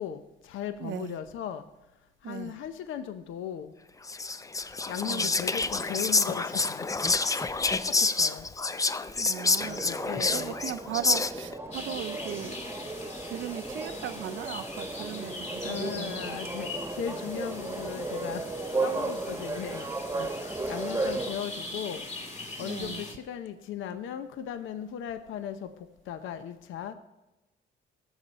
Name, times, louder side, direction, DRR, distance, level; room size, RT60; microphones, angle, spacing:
voice 1, 0.0-1.6 2.2-3.7 4.9-6.9 7.5-8.5 9.6-10.5 15.6-18.5 18.8-19.9 20.2-22.0 22.6-26.9, left 9 dB, 80° left, 10 dB, 0.7 m, -37 dB
voice 2, 0.8-1.2 2.2-2.6 5.0-5.4 9.1-12.6 13.2-16.4 22.6-23.0, right 11 dB, 75° right, 11 dB, 0.6 m, -38 dB
Whispering, 4.1-11.5, left 3 dB, 15° left, 0.4 m, -28 dB
sound 1, 9.6-21.3, right 3 dB, 15° right, 1.1 m, -35 dB
sound 2, 11.7-23.1, left 2 dB, 35° left, 2.2 m, -41 dB
18.0 x 7.2 x 4.1 m, 1.0 s
cardioid pair, 90°, 20 cm